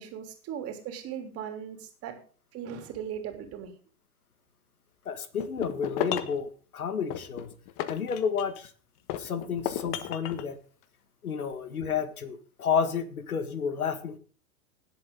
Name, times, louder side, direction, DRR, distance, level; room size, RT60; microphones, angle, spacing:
voice 1, 0.0-2.2 2.5-3.7, right 8 dB, 35° right, 5 dB, 3.2 m, -38 dB
voice 2, 5.1-7.5 7.9-8.7 9.2-10.6 11.2-14.2, left 6 dB, 85° left, 11 dB, 2.0 m, -31 dB
sound 1, 5.4-6.4 7.1-8.7 9.1-10.5, left 12 dB, 40° left, 1.3 m, -34 dB
18.5 x 8.0 x 3.8 m, 0.40 s
hypercardioid pair, 115°, 43 cm